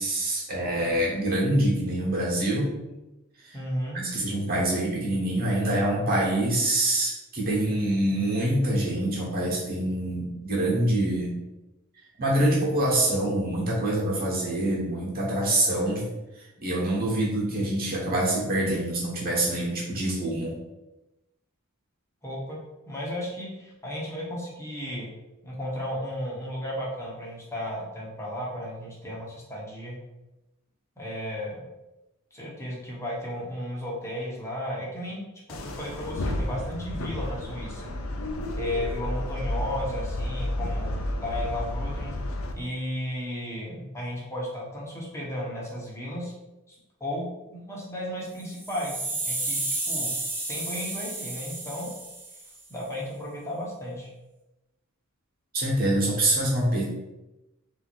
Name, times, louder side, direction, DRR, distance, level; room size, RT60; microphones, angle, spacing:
voice 1, 0.0-2.7 3.4-3.6 3.9-11.3 12.2-16.0 16.6-20.5 55.5-56.8, right 1 dB, 45° right, -4 dB, 1.4 m, -25 dB
voice 2, 3.5-4.0 22.2-22.6 22.9-25.1 25.4-30.0 31.0-31.6 32.3-35.2 35.5-37.9 38.6-40.9 41.2-42.2 42.5-46.3 46.7-47.3 47.5-50.2 50.5-51.9 52.7-54.1, left 1 dB, 15° left, -4 dB, 1.2 m, -34 dB
sound 1, 35.5-42.5, left 1 dB, 70° left, 0.6 m, -31 dB
sound 2, 48.4-52.6, right 2 dB, 10° right, 0.8 m, -32 dB
3.6 x 2.8 x 4.4 m, 1.0 s
head